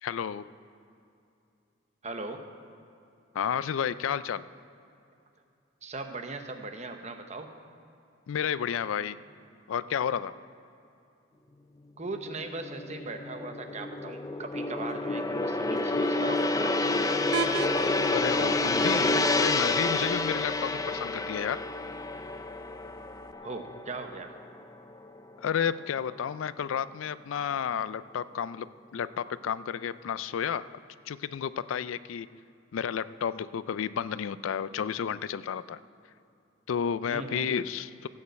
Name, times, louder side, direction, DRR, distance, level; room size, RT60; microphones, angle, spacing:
voice 1, 0.0-0.5 3.3-4.4 8.3-9.2 9.7-10.4 18.1-21.6 25.4-28.7 28.9-30.7 31.1-32.3 32.7-35.8 36.7-38.1, left 8 dB, 90° left, 16 dB, 0.4 m, -31 dB
voice 2, 2.0-2.4 5.8-7.5 12.0-17.4 23.4-24.3 37.1-37.5, right 3 dB, 35° right, 6 dB, 0.9 m, -39 dB
Gong, 12.1-24.6 24.9-25.2, left 2 dB, 20° left, 0.4 m, -29 dB
sound 1, 17.3-23.3, right 5 dB, 85° right, 0.6 m, -40 dB
15.5 x 5.4 x 8.0 m, 2.6 s
head